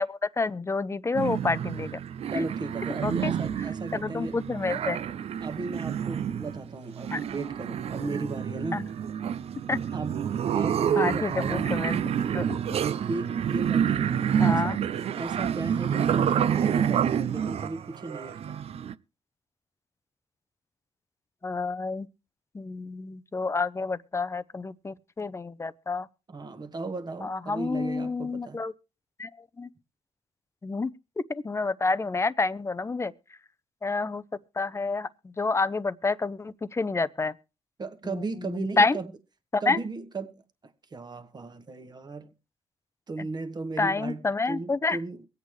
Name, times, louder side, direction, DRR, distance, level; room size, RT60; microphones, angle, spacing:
voice 1, 0.0-2.0 2.3-2.4 3.0-3.3 3.9-5.0 7.1-7.2 8.7-8.9 9.7-9.8 11.0-12.0 12.3-12.6 14.4-14.8 21.4-22.1 22.5-26.1 27.2-28.7 29.2-29.3 29.6-29.7 30.6-30.9 31.3-33.1 33.8-34.2 34.6-37.4 38.0-39.0 39.5-39.8 43.2-43.3 43.8-45.0, left 3 dB, 25° left, 0.6 m, -28 dB
sound 1, 1.1-18.9, right 8 dB, 60° right, 0.5 m, -28 dB
voice 2, 2.3-4.4 5.4-8.9 9.9-10.2 10.5-11.8 12.8-14.1 14.4-14.8 15.1-18.6 26.3-28.6 37.8-39.1 39.6-40.4 40.9-42.3 43.1-45.3, right 3 dB, 35° right, 1.4 m, -36 dB
23.0 x 8.3 x 3.2 m
cardioid pair, 70°, 12 cm